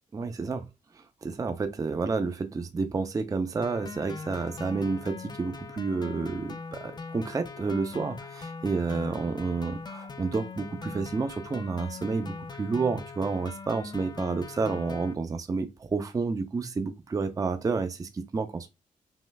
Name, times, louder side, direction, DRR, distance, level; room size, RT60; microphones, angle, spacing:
voice 1, 0.1-0.7 1.0-18.7, right 4 dB, 25° right, 0.5 m, -30 dB
sound 1, 3.6-15.1, left 4 dB, 30° left, 0.5 m, -41 dB
5.5 x 3.1 x 2.3 m
wide cardioid pair, 130°, 14 cm